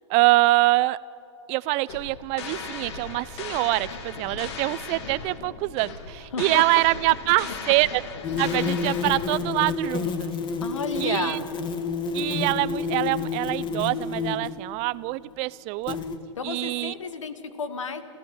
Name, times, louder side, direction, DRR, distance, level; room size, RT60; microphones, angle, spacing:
voice 1, 0.1-1.0 1.5-8.0 8.4-10.3 11.0-11.4 12.1-16.0 16.4-16.9, right 21 dB, 40° right, 19 dB, 0.6 m, -24 dB
sound 1, 1.9-9.8, left 5 dB, 60° left, 2.7 m, -37 dB
voice 2, 6.3-6.6 7.6-7.7 10.6-11.5 16.4-18.0, left 5 dB, 85° left, 12 dB, 1.8 m, -32 dB
sound 2, 8.2-14.6 15.9-16.2, left 5 dB, 30° left, 1.9 m, -29 dB
29.5 x 14.0 x 9.6 m, 2.8 s
hypercardioid pair, 110°, 16 cm